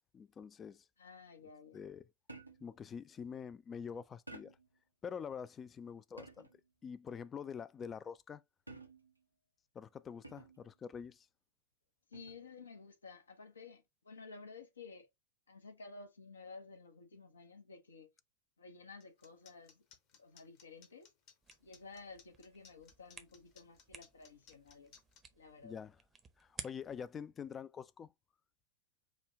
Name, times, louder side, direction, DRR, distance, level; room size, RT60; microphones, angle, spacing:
voice 1, 0.1-0.9 1.7-2.1 2.6-4.6 5.0-6.5 6.8-8.4 9.7-11.3 25.6-26.0 26.4-28.1, left 7 dB, 20° left, 0.3 m, -46 dB
voice 2, 1.0-1.9 12.1-15.1 15.5-18.1 18.6-19.8 20.2-21.1 21.6-24.9 25.4-25.8, left 4 dB, 70° left, 0.8 m, -53 dB
sound 1, 2.3-2.8 4.3-4.8 6.2-6.7 8.7-9.2 10.2-10.7 12.1-12.5, right 2 dB, 90° right, 0.6 m, -53 dB
sound 2, 19.0-25.2, left 7 dB, 40° left, 1.0 m, -61 dB
sound 3, 21.4-27.1, right 5 dB, 20° right, 0.7 m, -55 dB
5.0 x 2.2 x 3.6 m
figure-of-eight pair, 90°, 0 cm